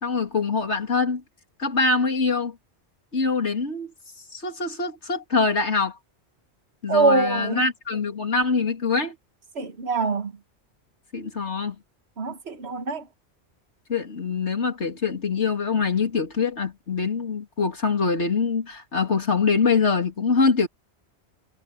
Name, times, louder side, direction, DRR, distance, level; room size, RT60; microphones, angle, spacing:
voice 1, 0.0-1.2 1.6-2.6 3.1-3.9 4.3-6.0 6.8-9.1 11.1-11.8 13.9-20.7, left 4 dB, 90° left, 3.2 m, -24 dB
voice 2, 6.9-7.7 9.6-10.3 12.2-13.0, right 4 dB, 70° right, 1.8 m, -23 dB
omnidirectional pair, 1.1 m